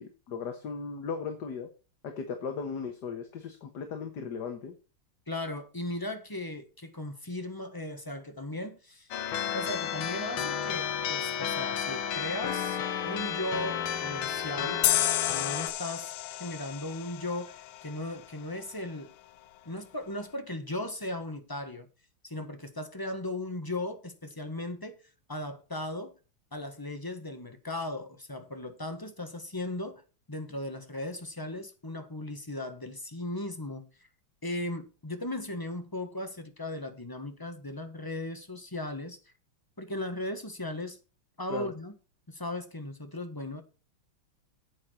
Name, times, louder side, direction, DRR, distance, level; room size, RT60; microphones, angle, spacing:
voice 1, 0.0-1.7 2.0-4.7 41.5-41.7, left 5 dB, 55° left, 1.9 m, -37 dB
voice 2, 5.3-9.1 9.5-12.8 13.0-14.9 15.3-19.1 19.6-21.9 22.2-25.0 25.3-26.1 26.5-30.0 30.3-33.9 34.4-39.2 39.8-41.0 41.4-41.9 42.3-43.6, left 1 dB, 15° left, 1.0 m, -37 dB
sound 1, 9.1-15.7, left 8 dB, 70° left, 1.9 m, -32 dB
sound 2, 14.8-18.2, left 14 dB, 90° left, 1.6 m, -31 dB
9.5 x 8.5 x 4.4 m
omnidirectional pair, 2.4 m